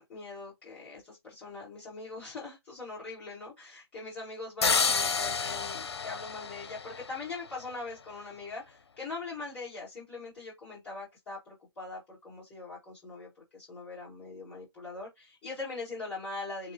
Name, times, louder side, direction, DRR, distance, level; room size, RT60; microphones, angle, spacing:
voice 1, 0.0-16.7, left 3 dB, 15° left, 2.2 m, -41 dB
sound 1, 4.6-7.5, left 5 dB, 75° left, 0.8 m, -30 dB
7.1 x 2.4 x 2.9 m
hypercardioid pair, 165°, 14 cm